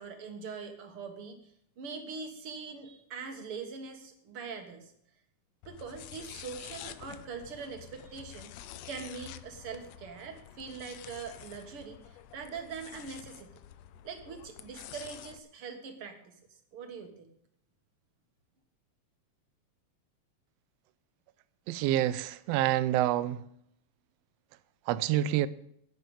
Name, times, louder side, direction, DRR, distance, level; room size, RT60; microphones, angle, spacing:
voice 1, 0.0-1.5 1.8-4.9 5.7-8.6 8.9-13.6 14.0-16.4 16.7-17.3, right 5 dB, 50° right, 2.3 m, -42 dB
sound 1, 5.6-15.4, left 12 dB, 75° left, 1.7 m, -48 dB
voice 2, 21.7-23.4 24.9-25.5, right 13 dB, 75° right, 1.6 m, -27 dB
10.5 x 8.7 x 8.6 m
omnidirectional pair, 3.3 m